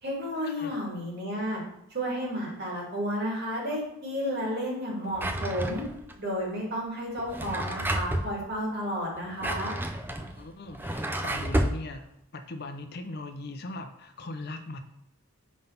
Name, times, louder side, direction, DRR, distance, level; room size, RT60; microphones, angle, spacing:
voice 1, 0.0-1.6 1.9-5.8 6.2-9.8, equal, 45° right, -3 dB, 2.1 m, -32 dB
Drawer open or close, 5.1-6.1 7.2-8.3 9.2-11.8, right 1 dB, 10° right, 0.3 m, -30 dB
voice 2, 10.2-14.8, left 2 dB, 45° left, 7 dB, 0.5 m, -40 dB
5.1 x 3.9 x 5.6 m, 0.81 s
head